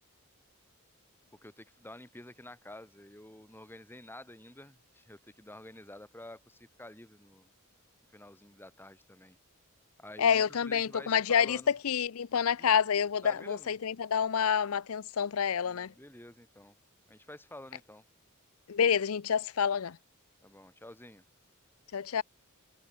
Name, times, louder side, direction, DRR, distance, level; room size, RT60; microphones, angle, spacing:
voice 1, 1.4-7.5 8.1-9.4 10.0-11.7 12.6-12.9 13.2-13.8 15.6-16.7 17.1-18.0 20.4-21.2, left 1 dB, 10° left, 4.9 m, -50 dB
voice 2, 10.2-15.9 18.7-20.0 21.9-22.2, left 7 dB, 70° left, 0.5 m, -28 dB
head